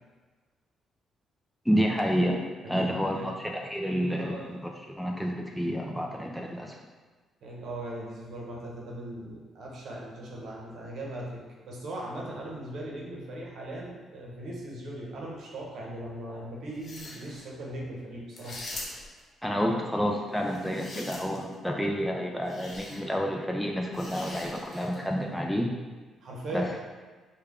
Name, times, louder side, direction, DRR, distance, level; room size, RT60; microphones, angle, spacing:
voice 1, 1.7-2.4 2.7-4.7 5.0-6.8 19.4-25.7 26.5-26.7, equal, ahead, 0 dB, 0.4 m, -29 dB
voice 2, 2.6-3.3 4.2-4.5 7.4-18.6 26.2-26.7, right 1 dB, 70° right, -3 dB, 0.8 m, -39 dB
sound 1, 16.7-17.4 18.3-19.2 20.4-21.5 22.5-23.0 23.9-25.0, left 2 dB, 50° left, 0.7 m, -42 dB
3.3 x 2.3 x 3.5 m, 1.4 s
cardioid pair, 90°, 0 cm